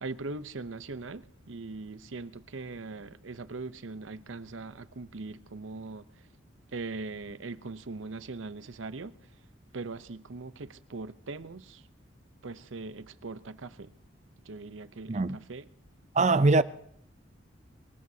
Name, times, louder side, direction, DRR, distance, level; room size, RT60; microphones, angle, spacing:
voice 1, 0.0-6.1 6.7-9.2 9.7-11.8 12.4-13.9 14.5-15.7, right 3 dB, 85° right, 0.8 m, -40 dB
voice 2, 16.2-16.6, right 3 dB, 35° right, 0.5 m, -22 dB
23.5 x 20.0 x 2.8 m
head